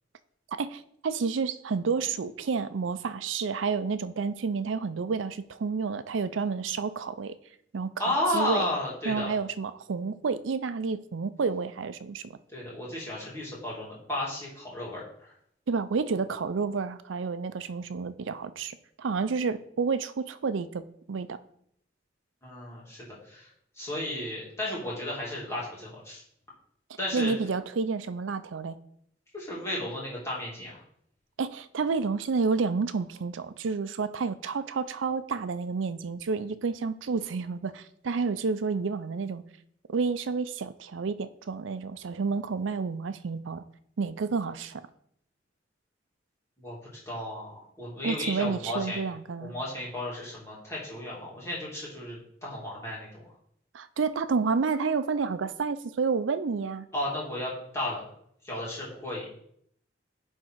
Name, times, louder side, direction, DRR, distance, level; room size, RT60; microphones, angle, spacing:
voice 1, 0.6-7.3 7.7-8.7 9.0-12.4 15.7-21.4 27.1-28.8 31.4-39.4 39.9-43.6 44.0-44.8 48.0-49.5 53.7-56.9, right 5 dB, 90° right, 14 dB, 0.5 m, -30 dB
voice 2, 8.0-9.3 12.5-15.3 22.4-23.5 23.8-26.2 27.0-27.3 29.3-30.8 46.6-46.8 47.1-49.0 49.4-53.1 56.9-58.0 58.4-59.2, left 1 dB, 15° left, -6 dB, 2.5 m, -33 dB
10.5 x 3.7 x 4.6 m, 0.69 s
head